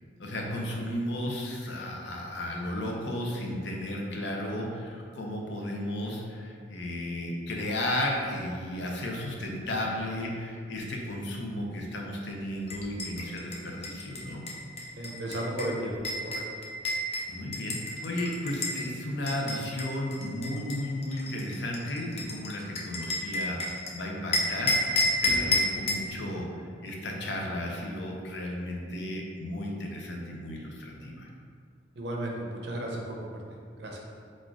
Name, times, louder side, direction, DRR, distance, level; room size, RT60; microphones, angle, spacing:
voice 1, 0.2-14.4 17.3-17.8 18.0-31.3, left 1 dB, 70° left, -1 dB, 0.7 m, -34 dB
sound 1, 12.7-18.8 19.3-23.9 24.3-26.1, left 1 dB, 35° left, 0.5 m, -31 dB
voice 2, 15.0-16.0 16.2-16.4 32.0-33.3 33.8-34.0, right 1 dB, 65° right, -1 dB, 0.7 m, -34 dB
4.3 x 2.5 x 4.6 m, 2.2 s
head